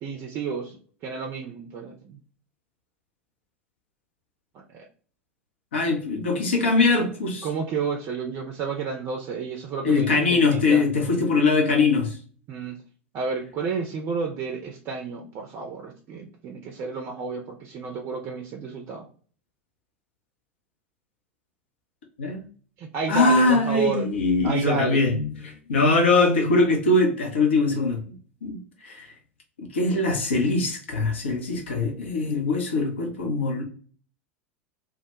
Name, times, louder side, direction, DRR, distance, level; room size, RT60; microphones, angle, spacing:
voice 1, 0.0-2.2 4.7-4.8 7.4-10.8 12.5-12.8 13.1-19.0 22.8-24.1 24.4-25.0, right 5 dB, 40° right, 0.4 m, -31 dB
voice 2, 5.7-7.5 9.8-12.2 22.2-22.4 23.1-28.2 28.4-29.1 29.6-33.6, left 3 dB, 70° left, 0.6 m, -22 dB
2.2 x 2.1 x 2.7 m
figure-of-eight pair, 80°, 7 cm